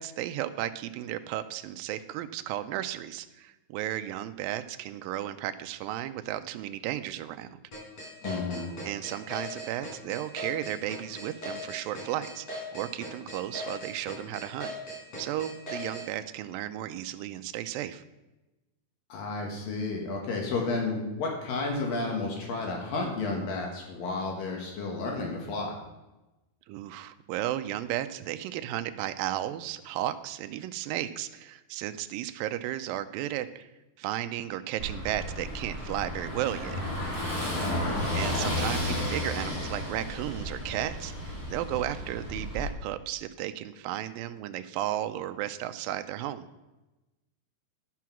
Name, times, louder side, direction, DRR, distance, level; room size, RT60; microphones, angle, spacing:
voice 1, 0.0-7.6 8.8-18.0 26.7-33.7 34.0-36.8 38.1-46.5, right 13 dB, 80° right, 10 dB, 2.2 m, -34 dB
sound 1, 7.7-16.1, equal, 45° left, 5.1 m, -38 dB
voice 2, 8.2-8.7 19.1-25.8 37.4-38.0, left 3 dB, 70° left, 0 dB, 3.1 m, -32 dB
Car passing by / Engine, 34.8-42.7, left 1 dB, 25° left, 3.0 m, -33 dB
11.5 x 6.2 x 5.8 m, 1.0 s
omnidirectional pair, 4.3 m